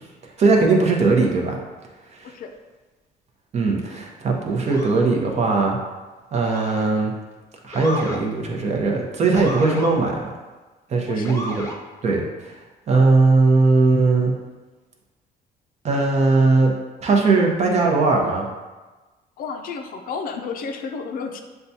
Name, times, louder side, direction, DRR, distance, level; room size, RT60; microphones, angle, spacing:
voice 1, 0.4-1.6 2.1-2.3 3.5-5.8 6.3-7.1 7.6-10.2 10.9-11.5 12.0-12.6 12.9-14.3 15.8-16.7 17.0-18.5, right 3 dB, 40° right, 0 dB, 0.7 m, -19 dB
Motor vehicle (road) / Siren, 4.6-5.0 6.4-7.0 7.7-8.2 9.3-9.9 11.2-11.8, left 1 dB, 15° left, 0.7 m, -32 dB
voice 2, 11.0-11.4 19.4-21.4, left 5 dB, 60° left, 5 dB, 0.5 m, -31 dB
6.6 x 2.3 x 2.7 m, 1.2 s
cardioid pair, 110°, 17 cm